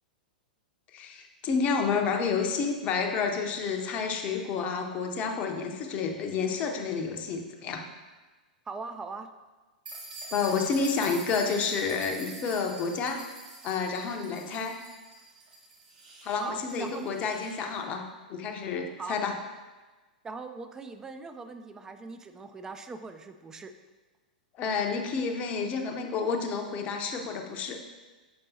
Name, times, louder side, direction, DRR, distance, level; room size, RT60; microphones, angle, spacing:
voice 1, 0.9-7.8 10.3-13.2 13.6-14.8 16.2-18.0 18.3-19.3 24.6-27.8, left 5 dB, 30° left, 4 dB, 0.7 m, -30 dB
voice 2, 8.7-9.3 16.4-17.1 19.0-19.2 20.2-23.7, right 4 dB, 10° right, 8 dB, 0.3 m, -40 dB
sound 1, 9.9-17.6, right 2 dB, 60° right, 1.3 m, -45 dB
6.8 x 5.2 x 2.8 m, 1.3 s
figure-of-eight pair, 100°, 5 cm